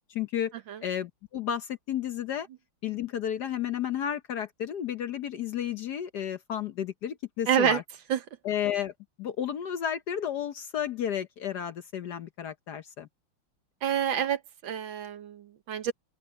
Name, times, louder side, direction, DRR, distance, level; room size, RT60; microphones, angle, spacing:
voice 1, 0.1-0.5 0.8-2.5 2.8-7.8 8.4-8.9 9.2-13.1, left 9 dB, 60° left, 1.2 m, -32 dB
voice 2, 7.5-7.8 8.1-8.2 13.8-15.9, right 8 dB, 65° right, 1.7 m, -27 dB
open air
omnidirectional pair, 2.3 m